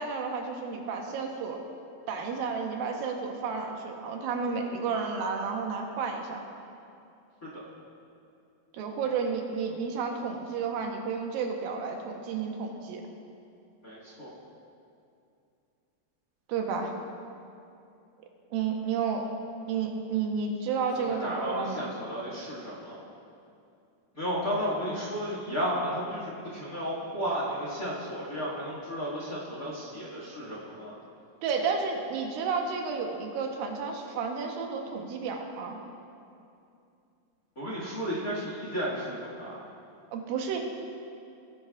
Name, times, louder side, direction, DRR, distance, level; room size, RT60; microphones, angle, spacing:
voice 1, 0.0-1.6 2.1-6.4 8.7-13.0 16.5-16.9 18.5-19.3 19.7-21.9 31.4-35.8 40.1-40.6, right 5 dB, 90° right, 2 dB, 2.7 m, -31 dB
voice 2, 13.8-14.3 20.9-23.0 24.1-30.9 37.5-39.6, equal, 35° left, -5 dB, 1.6 m, -33 dB
18.0 x 10.0 x 2.4 m, 2.6 s
omnidirectional pair, 4.1 m